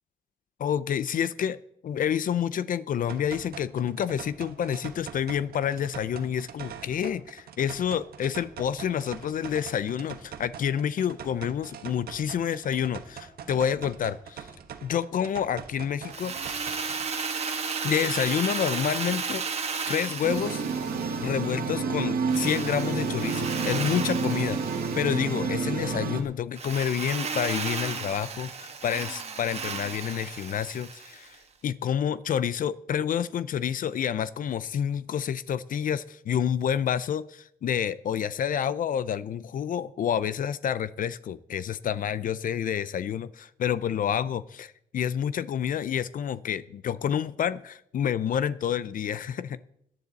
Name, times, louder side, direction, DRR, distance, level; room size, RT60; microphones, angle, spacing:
voice 1, 0.6-1.6 1.8-14.5 14.8-17.1 17.8-19.4 19.9-20.7 21.2-24.6 25.0-49.6, left 9 dB, 65° left, 17 dB, 0.5 m, -29 dB
sound 1, 3.1-17.1, right 8 dB, 90° right, 1.3 m, -43 dB
Drill, 16.1-21.6 22.3-25.6 26.5-31.3, right 5 dB, 45° right, 1.4 m, -34 dB
sound 2, 20.2-26.2, right 4 dB, 75° right, 1.5 m, -29 dB
17.0 x 10.5 x 4.0 m, 0.74 s
wide cardioid pair, 130°, 15 cm